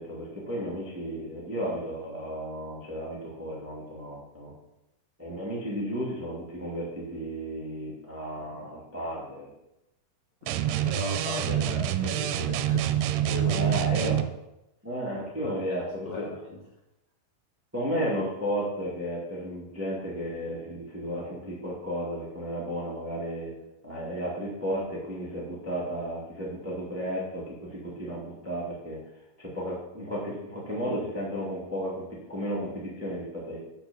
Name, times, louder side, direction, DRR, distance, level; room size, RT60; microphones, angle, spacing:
voice 1, 0.0-4.5 5.2-9.5 13.5-14.2 14.8-16.3 17.7-23.5 23.8-29.0 29.4-33.6, equal, 10° right, -5 dB, 0.6 m, -33 dB
voice 2, 10.4-13.8 15.4-16.6, left 3 dB, 70° left, -3 dB, 1.7 m, -38 dB
sound 1, 10.5-14.3, right 11 dB, 85° right, 2.5 m, -26 dB
6.2 x 6.1 x 6.9 m, 0.91 s
omnidirectional pair, 4.7 m